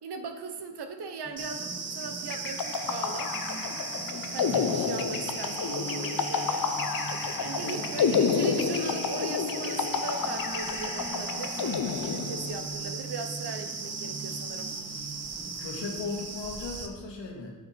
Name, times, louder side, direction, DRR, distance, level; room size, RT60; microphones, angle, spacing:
voice 1, 0.0-3.3 4.3-6.7 7.3-14.7, right 4 dB, 60° right, 6 dB, 1.1 m, -39 dB
sound 1, 1.2-16.3, right 3 dB, 5° right, 1.5 m, -45 dB
sound 2, 1.4-16.9, right 4 dB, 35° right, 1.2 m, -37 dB
sound 3, 2.3-12.7, left 6 dB, 50° left, 0.8 m, -30 dB
voice 2, 4.5-4.8 7.6-8.2 15.4-17.5, left 4 dB, 70° left, -1 dB, 2.3 m, -37 dB
9.9 x 5.8 x 4.5 m, 1.3 s
supercardioid pair, 55°, 45 cm